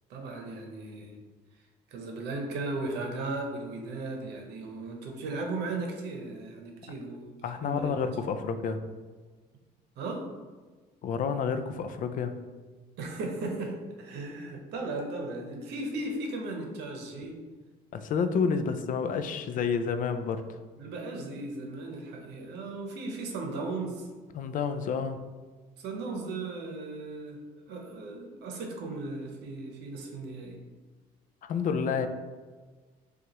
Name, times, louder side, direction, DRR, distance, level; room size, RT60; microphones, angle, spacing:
voice 1, 0.1-1.1 1.9-7.4 7.6-7.9 10.0-10.2 13.0-17.4 20.8-24.1 25.8-27.4 27.7-30.6, right 2 dB, 80° right, 2 dB, 0.8 m, -36 dB
voice 2, 7.4-8.8 11.0-12.3 17.9-20.4 24.3-25.2 31.4-32.1, left 6 dB, 55° left, 9 dB, 0.4 m, -29 dB
6.2 x 2.4 x 2.9 m, 1.4 s
cardioid pair, 110°, 17 cm